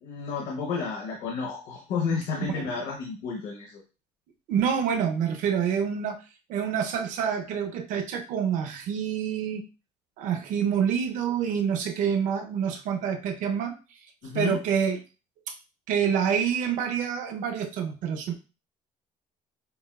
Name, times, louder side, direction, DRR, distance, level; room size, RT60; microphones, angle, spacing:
voice 1, 0.0-3.8 14.2-14.6, left 5 dB, 65° left, -1 dB, 1.1 m, -31 dB
voice 2, 4.5-6.2 6.5-9.6 10.2-13.7 14.3-15.0 15.5-15.6 15.9-18.3, right 7 dB, 70° right, 5 dB, 0.7 m, -27 dB
6.9 x 2.3 x 2.3 m, 0.32 s
cardioid pair, 160°, 14 cm